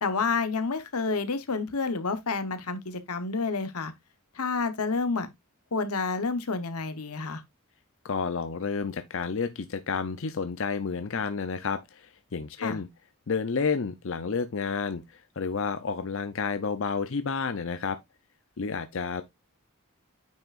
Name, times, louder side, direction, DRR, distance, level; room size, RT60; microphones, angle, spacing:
voice 1, 0.0-3.9 4.3-5.3 5.7-7.4 12.6-12.8, left 4 dB, 90° left, 1.1 m, -29 dB
voice 2, 8.0-12.9 13.3-18.0 18.6-19.2, left 5 dB, 60° left, 0.6 m, -30 dB
9.1 x 5.8 x 2.5 m
head